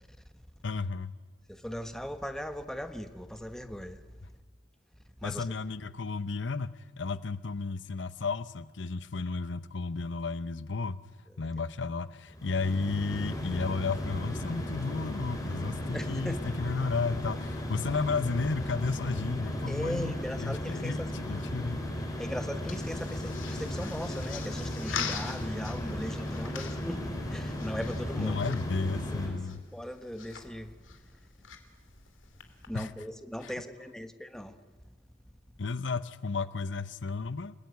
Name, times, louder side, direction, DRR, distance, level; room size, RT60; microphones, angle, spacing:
voice 1, 0.6-1.1 5.2-11.0 11.4-21.9 28.2-29.6 32.7-32.9 33.4-33.5 35.6-37.5, left 4 dB, 70° left, 0.8 m, -33 dB
voice 2, 1.5-4.1 5.2-5.4 11.3-11.5 15.9-16.5 19.7-21.1 22.2-28.5 28.9-29.4 29.7-30.8 32.7-34.6, equal, 5° left, 1.4 m, -38 dB
sound 1, 12.3-29.3, left 1 dB, 20° left, 5.2 m, -36 dB
sound 2, 22.4-32.7, left 7 dB, 90° left, 2.8 m, -44 dB
29.5 x 19.5 x 9.5 m
head